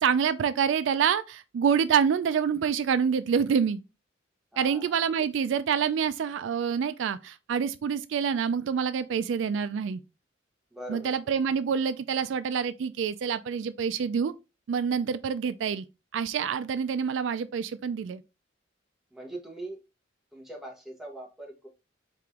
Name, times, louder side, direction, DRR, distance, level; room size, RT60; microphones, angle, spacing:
voice 1, 0.0-3.8 4.6-10.0 10.9-14.3 14.7-15.8 16.1-18.2, right 7 dB, 70° right, 0.3 m, -27 dB
voice 2, 4.5-5.3 10.7-11.3 19.1-19.8 20.3-21.7, right 1 dB, ahead, 1.2 m, -42 dB
4.8 x 2.9 x 3.5 m
head